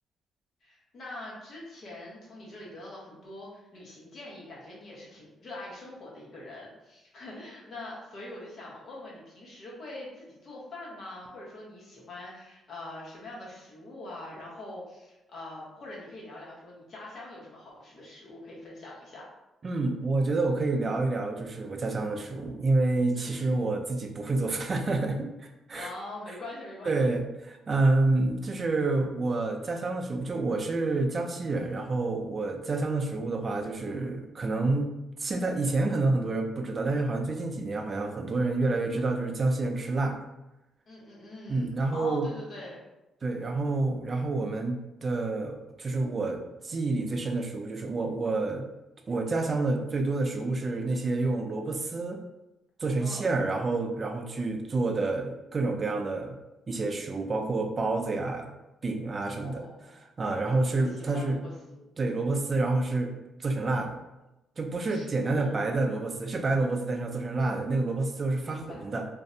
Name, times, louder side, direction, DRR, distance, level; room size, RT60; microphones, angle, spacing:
voice 1, 0.6-19.3 23.1-23.5 25.7-27.1 40.9-42.8 53.0-53.3 59.3-59.9 60.5-62.2 64.9-65.7 68.4-68.8, left 2 dB, 55° left, -4 dB, 0.9 m, -44 dB
voice 2, 19.6-25.9 26.9-34.9 35.2-40.2 41.5-42.3 43.2-48.6 49.1-52.2 52.8-56.3 56.7-58.5 58.8-59.6 60.2-61.4 62.0-63.1 63.4-64.0 64.6-69.1, right 2 dB, 35° right, 4 dB, 0.4 m, -28 dB
2.5 x 2.0 x 2.6 m, 0.96 s
cardioid pair, 90°, 0 cm